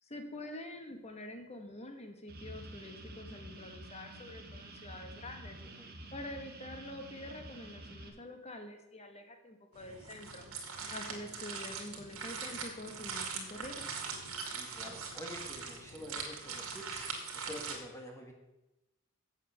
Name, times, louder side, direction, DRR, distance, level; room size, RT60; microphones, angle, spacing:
voice 1, 0.0-5.6 6.1-10.5 10.9-13.8, left 1 dB, 30° left, 5 dB, 1.3 m, -46 dB
sound 1, 2.3-8.1, right 1 dB, 45° right, 1.5 m, -49 dB
sound 2, 9.7-17.8, right 5 dB, 80° right, 2.2 m, -41 dB
voice 2, 14.5-18.3, equal, 10° left, 1 dB, 1.4 m, -48 dB
8.0 x 7.3 x 6.8 m, 0.96 s
head